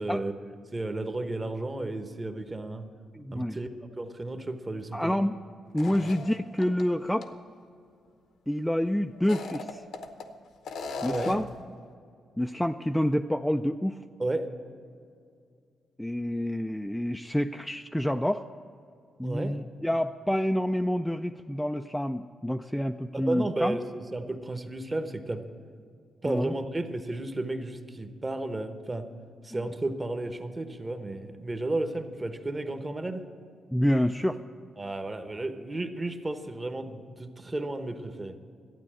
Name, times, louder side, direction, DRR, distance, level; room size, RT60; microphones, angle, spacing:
voice 1, 0.0-2.9 3.3-5.2 5.9-6.1 11.0-11.3 14.2-14.4 19.2-19.6 23.1-25.4 26.2-29.1 29.4-33.2 34.8-38.3, right 2 dB, 20° right, 8 dB, 1.0 m, -33 dB
voice 2, 3.1-3.6 4.9-5.4 5.7-7.3 8.5-9.8 11.0-11.5 12.4-14.0 16.0-18.4 19.2-23.8 26.3-26.5 33.7-34.4, equal, 5° left, 6 dB, 0.3 m, -28 dB
sound 1, 5.8-6.8 7.2-7.3 9.1-10.3 10.6-11.6, left 4 dB, 80° left, 0.9 m, -37 dB
12.5 x 9.1 x 7.5 m, 2.3 s
cardioid pair, 105°, 0 cm